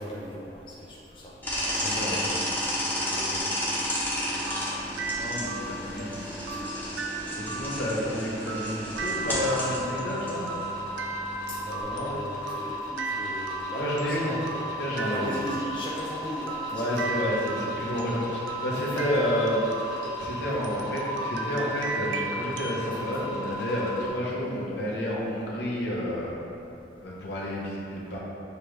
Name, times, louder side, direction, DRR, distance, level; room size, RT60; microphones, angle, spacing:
voice 1, 0.0-1.3 1.7-3.9 4.5-4.7 6.5-6.6 7.3-7.5 11.5-17.0 18.8-19.3 22.9-23.0 27.9-28.0, equal, 25° left, -5 dB, 0.3 m, -38 dB
sound 1, 1.4-11.8, equal, 10° left, 0.8 m, -32 dB
voice 2, 1.8-2.2 5.2-6.3 6.7-6.8 7.4-10.5 11.9-12.2 13.7-14.3 14.8-15.4 16.7-19.7 20.2-26.4 27.0-28.2, equal, 70° left, -5 dB, 0.9 m, -30 dB
sound 2, 4.5-22.9, right 3 dB, 85° right, 0.4 m, -37 dB
sound 3, 9.2-24.1, left 1 dB, 85° left, 1.4 m, -36 dB
6.7 x 2.4 x 3.2 m, 2.8 s
head